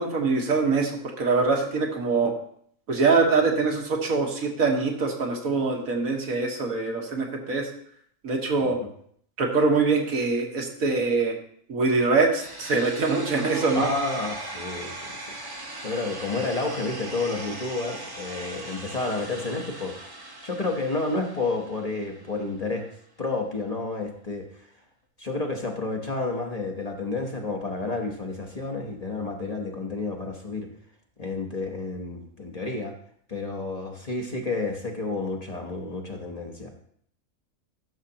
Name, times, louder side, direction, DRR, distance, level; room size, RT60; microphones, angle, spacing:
voice 1, 0.0-2.3 2.9-7.7 8.2-8.8 9.4-11.4 11.7-13.9, right 4 dB, 85° right, 1 dB, 1.8 m, -24 dB
sound 1, 12.3-22.3, right 1 dB, 20° right, 0.7 m, -39 dB
voice 2, 13.8-15.2 15.8-20.0 20.4-22.9 23.2-24.7 25.2-30.7 31.2-32.9 33.3-36.8, left 3 dB, 30° left, 2 dB, 1.0 m, -30 dB
12.5 x 6.5 x 2.9 m, 0.65 s
omnidirectional pair, 1.4 m